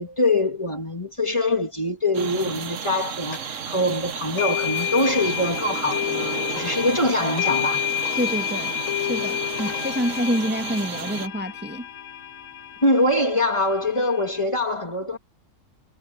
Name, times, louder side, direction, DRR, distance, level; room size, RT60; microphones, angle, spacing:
voice 1, 0.0-7.9 12.8-15.2, left 1 dB, 25° left, 1.9 m, -23 dB
sound 1, 2.1-11.3, right 7 dB, 75° right, 1.5 m, -33 dB
sound 2, 3.3-3.4 4.4-14.4, left 12 dB, 90° left, 1.6 m, -30 dB
voice 2, 8.2-8.7 9.0-11.9, equal, 10° right, 1.5 m, -27 dB
omnidirectional pair, 1.3 m